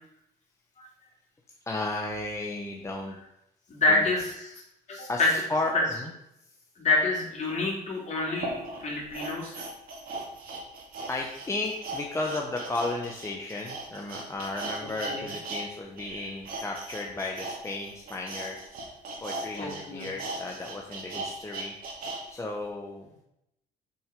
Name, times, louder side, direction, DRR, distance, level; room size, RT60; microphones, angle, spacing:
voice 1, 1.7-3.2 3.9-4.0 5.1-5.7 6.0-6.1 11.1-18.6 19.2-21.7 22.0-23.1, left 2 dB, 15° left, 0 dB, 0.9 m, -34 dB
voice 2, 3.7-4.6 4.9-5.3 6.8-9.6 15.1-15.3 19.6-20.1, left 2 dB, 45° left, -2 dB, 3.3 m, -27 dB
sound 1, 7.5-7.6 8.3-15.6 15.9-22.2 22.6-22.7, right 2 dB, 60° right, 2.4 m, -38 dB
7.1 x 6.1 x 5.2 m, 0.83 s
cardioid pair, 110°, 17 cm